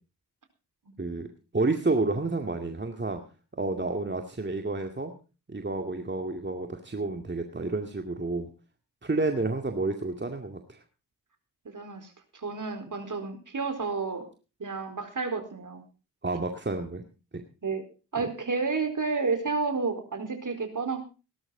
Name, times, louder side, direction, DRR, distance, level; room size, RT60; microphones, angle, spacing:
voice 1, 1.0-1.3 1.5-3.2 3.6-5.1 5.5-8.5 9.0-10.8 16.2-17.0 18.2-18.3, right 3 dB, 25° right, 4 dB, 2.2 m, -30 dB
voice 2, 11.6-14.3 14.6-15.8 17.6-17.8 18.1-21.0, right 4 dB, 45° right, 7 dB, 4.3 m, -31 dB
18.0 x 12.5 x 3.9 m, 0.33 s
hypercardioid pair, 40°, 45 cm